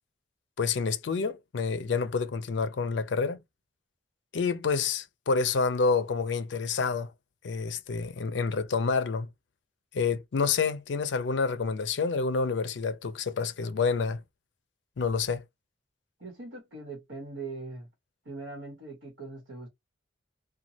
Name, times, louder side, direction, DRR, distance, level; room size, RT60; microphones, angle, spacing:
voice 1, 0.6-3.4 4.3-7.1 7.4-9.3 9.9-14.2 15.0-15.4, left 5 dB, 70° left, 0.4 m, -28 dB
voice 2, 16.2-17.9 18.2-19.7, right 3 dB, 80° right, 1.1 m, -41 dB
3.0 x 2.2 x 2.7 m
head